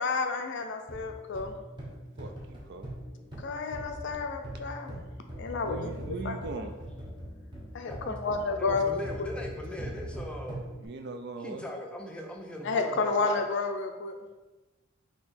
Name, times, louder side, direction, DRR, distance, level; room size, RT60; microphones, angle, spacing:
voice 1, 0.0-1.6 3.4-5.0 5.4-6.0 6.2-6.7 7.7-9.3 12.6-14.2, left 4 dB, 55° left, 5 dB, 0.4 m, -31 dB
sound 1, 0.9-10.8, equal, 20° right, 0.9 m, -41 dB
voice 2, 1.8-2.9 5.6-6.8 10.8-11.6, right 3 dB, 50° right, 6 dB, 0.4 m, -41 dB
voice 3, 6.1-7.0 7.9-10.6 11.4-13.5, left 1 dB, 5° left, 0 dB, 0.5 m, -41 dB
4.4 x 2.8 x 4.2 m, 1.2 s
head